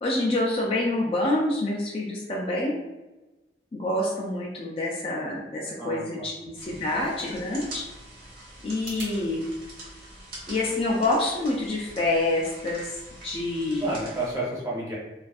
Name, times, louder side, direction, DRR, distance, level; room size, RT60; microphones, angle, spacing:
voice 1, 0.0-2.8 3.7-7.8 8.6-9.5 10.5-13.9, left 2 dB, 30° left, -3 dB, 0.3 m, -27 dB
voice 2, 5.8-6.3 13.8-15.0, right 2 dB, 15° right, -6 dB, 0.6 m, -30 dB
sound 1, 6.5-14.4, right 1 dB, 55° right, 1.0 m, -44 dB
sound 2, 6.5-9.2, right 2 dB, 90° right, 1.0 m, -46 dB
2.4 x 2.4 x 2.3 m, 1.1 s
head